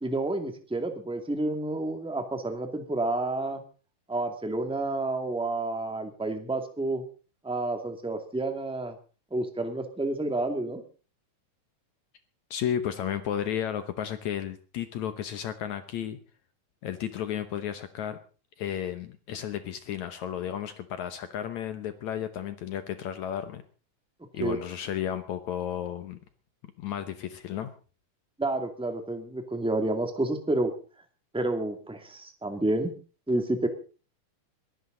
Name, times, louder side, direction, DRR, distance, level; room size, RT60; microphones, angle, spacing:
voice 1, 0.0-3.6 4.1-7.0 7.4-8.9 9.3-10.8 24.4-24.6 28.4-30.7 31.3-32.9 33.3-33.7, right 2 dB, ahead, 5 dB, 1.5 m, -29 dB
voice 2, 12.5-16.2 16.8-18.2 18.6-23.6 24.3-26.2 26.8-27.7, left 10 dB, 65° left, 10 dB, 2.2 m, -33 dB
22.0 x 16.0 x 3.9 m, 0.37 s
omnidirectional pair, 3.8 m